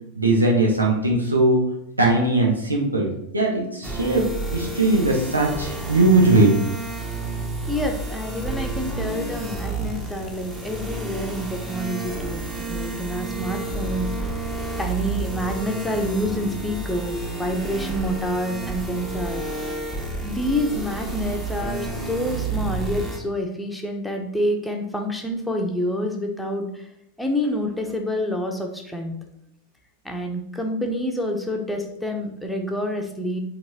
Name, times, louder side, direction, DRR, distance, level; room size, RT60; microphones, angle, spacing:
voice 1, 0.1-1.6 2.0-4.3 4.5-6.6, right 2 dB, 80° right, 0 dB, 1.4 m, -19 dB
sound 1, 3.8-23.2, right 3 dB, 15° right, 1.3 m, -30 dB
voice 2, 7.7-12.4 12.7-14.3 14.8-19.4 20.2-26.9 27.2-29.1 30.0-33.4, equal, 5° left, 1 dB, 1.0 m, -27 dB
7.8 x 3.4 x 4.3 m, 0.79 s
figure-of-eight pair, 90°, 0 cm